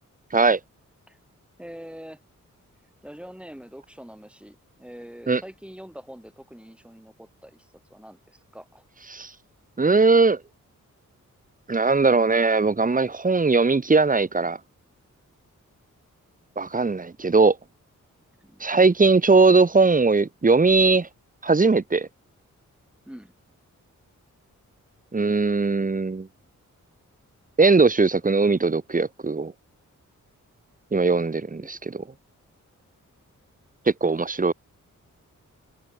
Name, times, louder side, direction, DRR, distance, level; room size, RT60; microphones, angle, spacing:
voice 1, 1.6-2.2 3.0-8.8 18.4-18.7 23.1-23.3, equal, 5° right, 6.1 m, -44 dB
voice 2, 9.8-10.4 11.7-14.6 16.6-17.6 18.6-21.1 21.4-22.1 25.1-26.3 27.6-29.5 30.9-32.0 34.0-34.5, right 3 dB, 25° right, 1.1 m, -19 dB
open air
cardioid pair, 70°, 32 cm